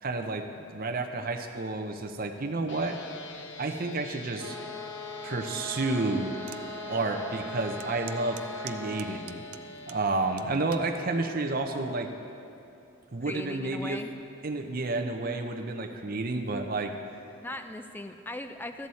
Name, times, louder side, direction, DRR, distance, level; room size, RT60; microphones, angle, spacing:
voice 1, 0.0-3.0 3.6-4.6 5.2-6.3 6.9-9.4 9.9-12.1 13.1-14.0 14.4-16.9, right 2 dB, 40° right, 4 dB, 0.6 m, -30 dB
sound 1, 2.7-12.0, left 2 dB, 55° left, 0.6 m, -45 dB
sound 2, 4.4-9.2, left 2 dB, 85° left, 1.4 m, -40 dB
sound 3, 6.5-6.6 7.1-7.2 7.8-10.0 10.4-10.9 11.6-11.9, right 13 dB, 85° right, 0.4 m, -45 dB
voice 2, 13.3-14.1 17.4-18.9, left 1 dB, 10° left, 7 dB, 0.3 m, -38 dB
13.5 x 7.8 x 4.2 m, 2.7 s
head